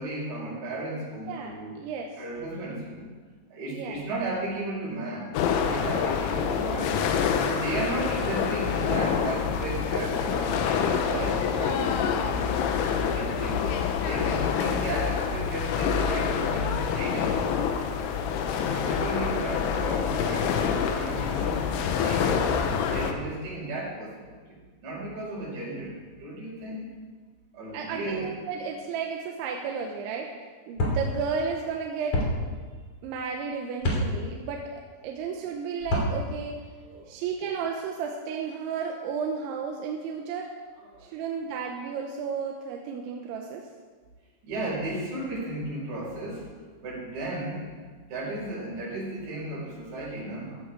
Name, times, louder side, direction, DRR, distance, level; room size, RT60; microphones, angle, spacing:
voice 1, 0.0-1.8 2.2-3.1 3.5-7.1 7.4-12.5 12.9-13.7 14.0-17.4 18.6-22.4 22.9-26.9 27.5-28.3 36.8-37.1 40.9-41.1 44.4-46.5 46.8-47.7 48.1-50.6, right 2 dB, 60° right, -6 dB, 8.1 m, -35 dB
voice 2, 1.3-2.1 3.7-4.0 27.7-30.3 30.7-32.2 33.0-34.7 35.0-36.6 37.1-40.5 41.0-43.6, right 6 dB, 75° right, 1 dB, 3.1 m, -33 dB
sound 1, 5.3-23.1, left 7 dB, 80° left, 3.4 m, -26 dB
Kickin' around the ole' pigskin, 30.8-31.0 32.1-32.3 33.8-34.0 35.8-36.1, left 1 dB, 35° left, 3.6 m, -25 dB
15.5 x 15.0 x 4.9 m, 1.5 s
omnidirectional pair, 5.9 m